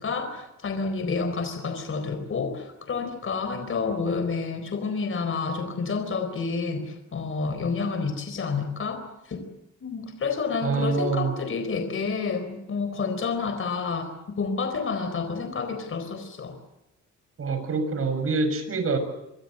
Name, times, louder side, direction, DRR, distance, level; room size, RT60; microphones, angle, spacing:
voice 1, 0.0-9.4 9.8-16.6, left 4 dB, 45° left, 7 dB, 4.2 m, -29 dB
voice 2, 10.6-11.3 17.4-19.0, right 4 dB, 50° right, 8 dB, 6.7 m, -26 dB
26.0 x 24.0 x 7.8 m, 0.88 s
cardioid pair, 110°, 30 cm